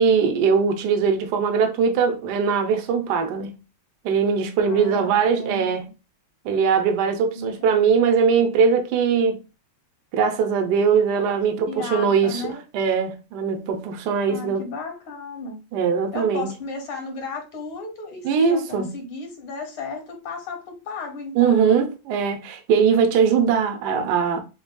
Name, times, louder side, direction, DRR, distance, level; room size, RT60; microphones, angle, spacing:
voice 1, 0.0-3.6 4.0-5.8 6.4-9.4 10.1-14.7 15.7-16.5 18.2-18.9 21.4-24.4, right 6 dB, 65° right, 1.1 m, -21 dB
voice 2, 4.6-5.7 7.3-8.0 11.7-12.6 14.3-15.6 16.1-21.9, left 3 dB, 90° left, 2.0 m, -34 dB
5.9 x 2.3 x 2.2 m
omnidirectional pair, 2.2 m